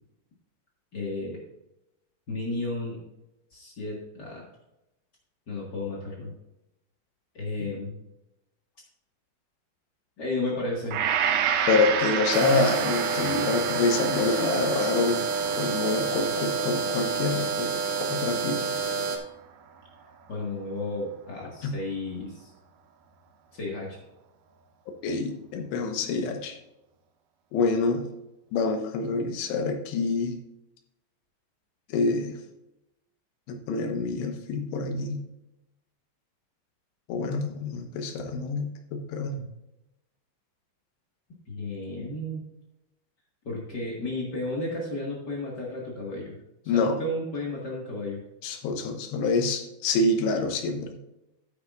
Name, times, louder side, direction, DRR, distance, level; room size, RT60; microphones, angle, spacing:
voice 1, 0.9-1.4 2.3-3.0 3.5-4.4 5.5-6.3 7.3-8.0 10.2-11.0 20.3-22.5 23.5-24.0 41.5-42.5 43.4-46.4 46.7-48.2, left 2 dB, 65° left, -4 dB, 1.0 m, -33 dB
Gong, 10.9-19.2 19.7-19.8, right 8 dB, 75° right, 2.3 m, -31 dB
voice 2, 11.7-15.2 15.6-17.7 18.0-18.8 21.6-21.8 25.0-26.6 27.5-28.1 28.5-30.4 31.9-32.4 33.5-35.2 37.1-39.5 46.7-47.0 48.4-51.0, left 3 dB, 80° left, 5 dB, 3.2 m, -27 dB
sound 1, 12.3-19.2, right 4 dB, 90° right, 1.6 m, -28 dB
11.5 x 9.7 x 2.5 m, 0.92 s
omnidirectional pair, 5.0 m